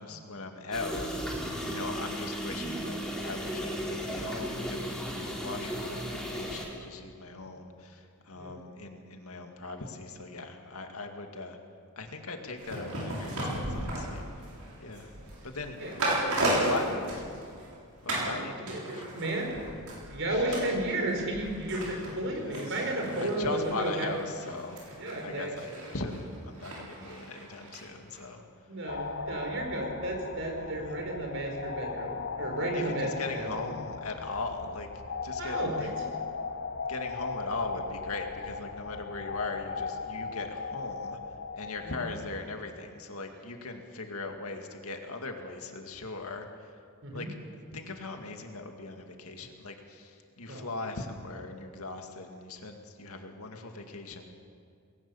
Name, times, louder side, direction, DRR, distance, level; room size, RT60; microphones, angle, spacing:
voice 1, 0.0-3.0 3.2-11.6 12.0-14.2 14.8-15.1 15.4-15.8 16.4-17.3 18.0-19.1 20.3-20.6 22.4-22.7 23.2-24.8 25.2-28.4 30.6-31.0 32.7-34.9 35.2-35.9 36.9-41.2 41.5-46.7 47.1-47.3 47.7-54.3, left 3 dB, 75° left, 4 dB, 2.2 m, -39 dB
sound 1, 0.7-6.6, equal, 5° left, 3.6 m, -35 dB
sound 2, 12.6-17.7 18.1-18.4 18.7-27.8 28.1-28.2, right 1 dB, 80° right, 7.4 m, -35 dB
voice 2, 15.8-16.2 18.2-19.6 20.1-24.1 25.0-25.7 28.7-33.7 35.4-35.9 41.8-41.9 47.0-47.3 50.5-50.6, right 1 dB, 60° right, 1 dB, 4.6 m, -33 dB
sound 3, 28.9-42.2, left 5 dB, 50° left, 0.7 m, -38 dB
20.5 x 18.0 x 7.2 m, 2.3 s
head